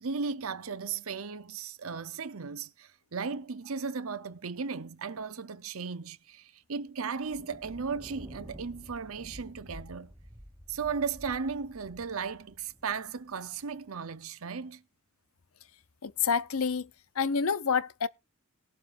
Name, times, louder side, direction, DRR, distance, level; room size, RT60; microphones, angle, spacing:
voice 1, 0.0-10.1 10.7-14.8, right 5 dB, 80° right, 0.8 m, -36 dB
Thunder, 7.2-13.8, equal, 5° right, 0.9 m, -50 dB
voice 2, 16.0-16.9 17.2-18.1, left 6 dB, 80° left, 0.7 m, -28 dB
18.0 x 12.0 x 2.6 m
head